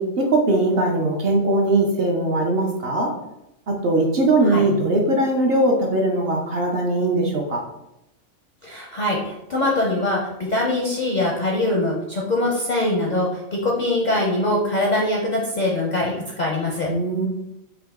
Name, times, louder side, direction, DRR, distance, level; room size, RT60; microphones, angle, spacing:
voice 1, 0.0-3.1 3.7-7.6 16.9-17.3, right 2 dB, 55° right, 1 dB, 0.8 m, -20 dB
voice 2, 8.6-10.2 10.5-16.9, left 1 dB, 50° left, -3 dB, 0.5 m, -23 dB
3.8 x 2.7 x 3.5 m, 0.87 s
omnidirectional pair, 1.4 m